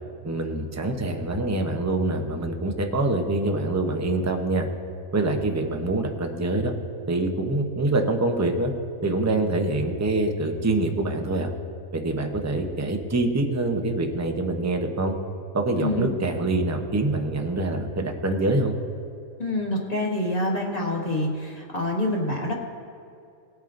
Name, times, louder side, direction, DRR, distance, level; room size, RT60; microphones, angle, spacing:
voice 1, 0.2-4.7 5.1-6.7 7.1-8.7 9.0-11.5 11.9-15.2 15.5-18.8, right 2 dB, 15° right, 3 dB, 0.6 m, -25 dB
voice 2, 15.8-16.1 19.4-22.5, left 1 dB, 30° left, -2 dB, 1.7 m, -26 dB
19.0 x 9.0 x 2.6 m, 2.5 s
omnidirectional pair, 1.5 m